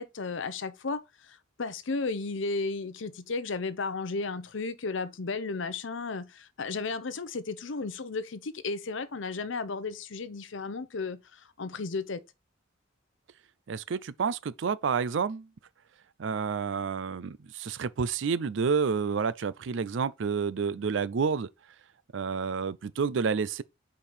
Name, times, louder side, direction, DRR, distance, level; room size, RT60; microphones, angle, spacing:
voice 1, 0.0-12.2, left 3 dB, 70° left, 0.7 m, -34 dB
voice 2, 13.7-15.5 16.2-21.5 22.1-23.6, right 5 dB, 65° right, 0.4 m, -29 dB
5.0 x 4.5 x 5.4 m
head